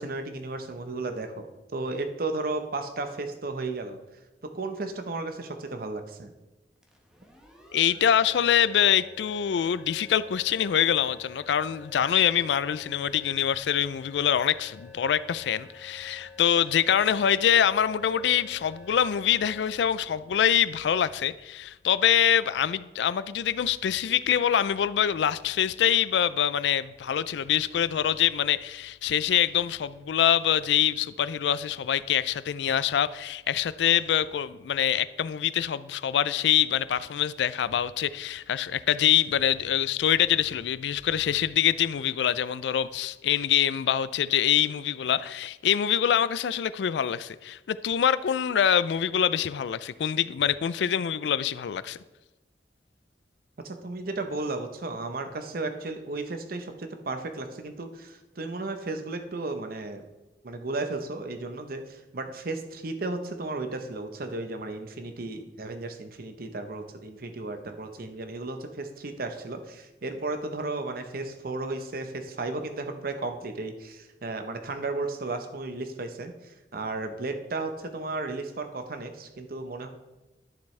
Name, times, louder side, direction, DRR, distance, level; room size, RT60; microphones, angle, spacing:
voice 1, 0.0-1.5 1.7-4.0 4.5-6.3 53.6-60.1 60.4-79.9, right 2 dB, 55° right, 0.8 m, -34 dB
sound 1, 6.8-21.4, left 4 dB, 5° right, 1.1 m, -50 dB
voice 2, 7.7-52.0, left 9 dB, 75° left, 0.3 m, -25 dB
11.5 x 6.9 x 3.2 m
head